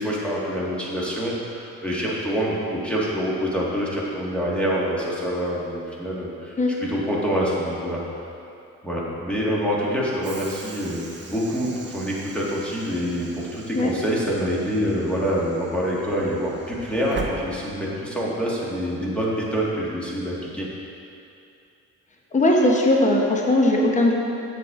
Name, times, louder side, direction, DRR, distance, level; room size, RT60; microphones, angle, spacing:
voice 1, 0.0-8.0 8.8-20.7, equal, 5° left, -6 dB, 1.7 m, -26 dB
Train / Sliding door, 10.2-18.2, right 4 dB, 40° right, 0.8 m, -41 dB
voice 2, 22.3-24.1, left 1 dB, 25° left, -1 dB, 1.0 m, -19 dB
7.5 x 6.9 x 3.7 m, 2.7 s
cardioid pair, 90°, 30 cm